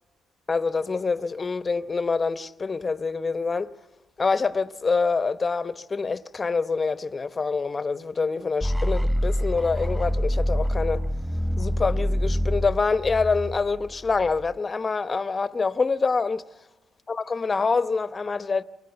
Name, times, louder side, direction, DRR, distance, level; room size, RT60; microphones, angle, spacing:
voice 1, 0.5-3.7 4.2-11.0 11.6-16.4 17.1-18.6, left 4 dB, 30° left, 0.9 m, -26 dB
sound 1, 8.6-14.5, equal, 5° right, 1.4 m, -26 dB
28.5 x 23.0 x 8.0 m
cardioid pair, 90°, 0 cm